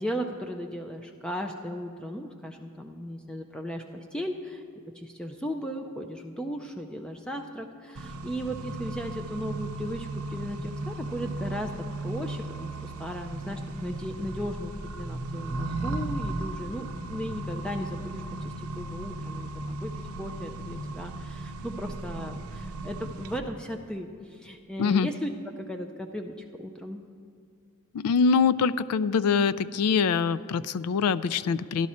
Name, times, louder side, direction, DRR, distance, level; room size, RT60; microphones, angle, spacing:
voice 1, 0.0-4.6 4.9-11.7 12.0-19.9 20.2-25.3 25.7-27.0, equal, 5° left, 3 dB, 0.4 m, -36 dB
Accelerating revving vroom, 8.0-23.4, right 2 dB, 75° right, 0.6 m, -36 dB
voice 2, 24.8-25.1 27.9-31.9, left 5 dB, 90° left, 17 dB, 0.3 m, -24 dB
12.0 x 11.5 x 4.2 m, 2.2 s
head